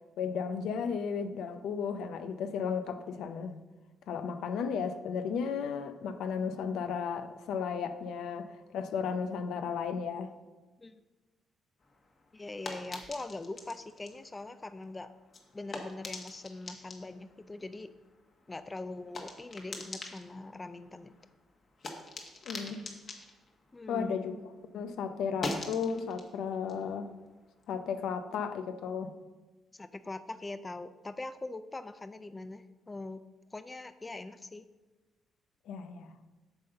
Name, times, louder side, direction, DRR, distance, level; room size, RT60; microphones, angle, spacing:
voice 1, 0.2-3.6 4.1-10.3 22.4-22.9 23.9-24.4 24.7-27.1 27.7-29.1 35.7-36.1, left 6 dB, 80° left, 9 dB, 0.6 m, -34 dB
sound 1, 11.8-24.6 24.9-28.1, left 2 dB, 45° left, 1.3 m, -45 dB
voice 2, 12.3-15.1 15.5-17.9 18.5-21.2 23.7-24.1 29.7-33.2 33.5-34.7, left 2 dB, 20° left, 12 dB, 0.4 m, -42 dB
8.1 x 3.9 x 6.6 m, 1.2 s
cardioid pair, 90°, 0 cm